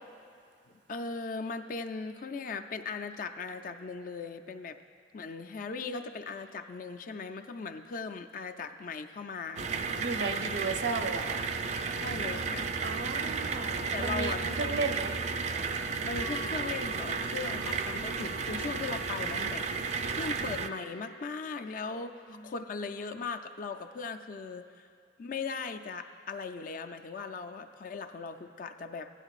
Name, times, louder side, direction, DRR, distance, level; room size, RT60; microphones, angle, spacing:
voice 1, 0.7-4.8 5.1-9.7 12.0-12.7 13.9-14.8 16.0-24.9 25.2-29.1, left 4 dB, 50° left, 7 dB, 0.4 m, -38 dB
sound 1, 9.6-20.7, right 5 dB, 40° right, 0.4 m, -33 dB
voice 2, 10.0-11.4 12.8-15.1 22.3-22.4, right 4 dB, 75° right, 5 dB, 0.7 m, -34 dB
Wind instrument woodwind instrument, 16.2-22.0, equal, 75° left, 1.2 m, -48 dB
15.5 x 10.5 x 2.4 m, 2.3 s
head